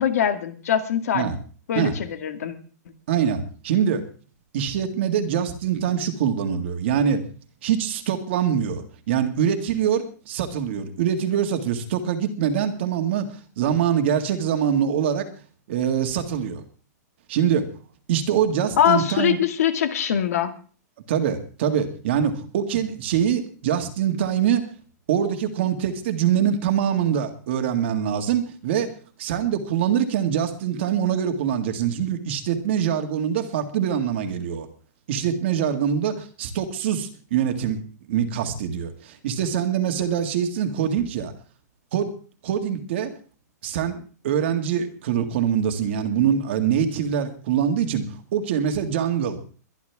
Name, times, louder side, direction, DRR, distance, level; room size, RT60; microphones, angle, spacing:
voice 1, 0.0-1.3 1.7-2.6 18.8-20.5, left 9 dB, 60° left, 8 dB, 2.0 m, -22 dB
voice 2, 3.1-4.0 4.5-7.2 7.6-15.3 15.7-16.6 17.3-17.6 18.1-19.4 21.1-24.7 25.1-28.9 29.2-34.7 35.1-41.3 41.9-42.1 42.4-43.1 43.6-48.1 48.3-49.4, right 8 dB, 40° right, 6 dB, 2.0 m, -24 dB
23.0 x 11.5 x 3.6 m, 0.40 s
supercardioid pair, 180°, 9 cm